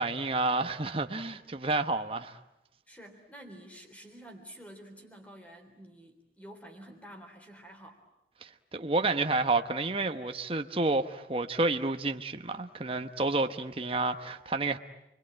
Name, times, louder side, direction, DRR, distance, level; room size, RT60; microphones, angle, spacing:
voice 1, 0.0-2.4 8.4-14.8, right 3 dB, 30° right, 1.1 m, -30 dB
voice 2, 2.9-8.0, right 1 dB, 10° left, 3.7 m, -49 dB
29.5 x 22.5 x 9.0 m
head